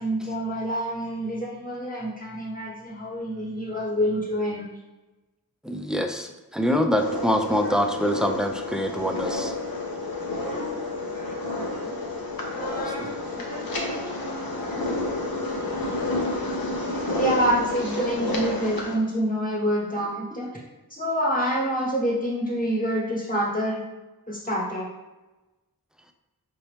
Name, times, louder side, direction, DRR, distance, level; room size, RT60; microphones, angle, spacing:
voice 1, 0.0-4.7 7.6-7.7 10.4-10.7 11.1-11.4 11.7-11.9 12.5-14.0 14.6-15.0 15.7-15.9 16.3-16.4 17.1-20.5 20.9-23.8 24.3-24.9, equal, 20° left, -5 dB, 1.4 m, -27 dB
voice 2, 5.6-9.5 13.0-13.1, equal, ahead, 5 dB, 0.4 m, -25 dB
sound 1, 7.0-18.9, left 2 dB, 65° left, 0.9 m, -30 dB
5.4 x 2.9 x 3.4 m, 1.1 s
wide cardioid pair, 55°, 38 cm